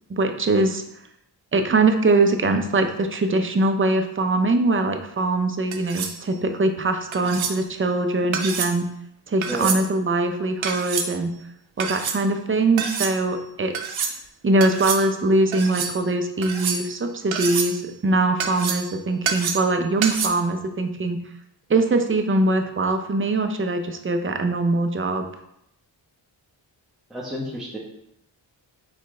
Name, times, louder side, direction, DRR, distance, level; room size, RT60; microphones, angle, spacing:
voice 1, 0.1-0.8 1.5-8.9 9.3-11.3 11.8-14.0 14.4-21.2 21.7-25.3, right 2 dB, 25° right, 6 dB, 0.5 m, -22 dB
sound 1, 5.7-6.2 7.1-7.6 8.3-8.8 9.4-9.8 10.6-11.1 11.8-12.2 12.8-13.1 13.7-14.2 14.6-15.0 15.5-15.9 16.4-17.0 17.3-17.8 18.4-18.9 19.3-19.7 20.0-20.3, right 6 dB, 75° right, 0.7 m, -27 dB
voice 2, 9.4-9.8 27.1-27.8, equal, ahead, -6 dB, 1.1 m, -31 dB
4.4 x 3.1 x 3.7 m, 0.79 s
cardioid pair, 65°, 48 cm